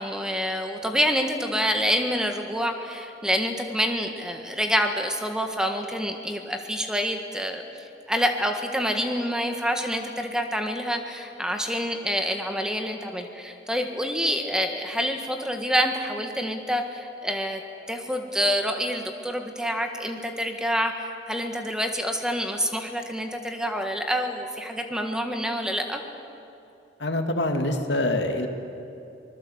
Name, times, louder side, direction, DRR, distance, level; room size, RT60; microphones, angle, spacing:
voice 1, 0.0-7.6 8.1-17.6 17.9-26.0, equal, 5° right, 4 dB, 1.5 m, -27 dB
voice 2, 27.0-28.5, left 1 dB, 80° left, 5 dB, 2.3 m, -25 dB
24.5 x 20.5 x 8.0 m, 2.8 s
head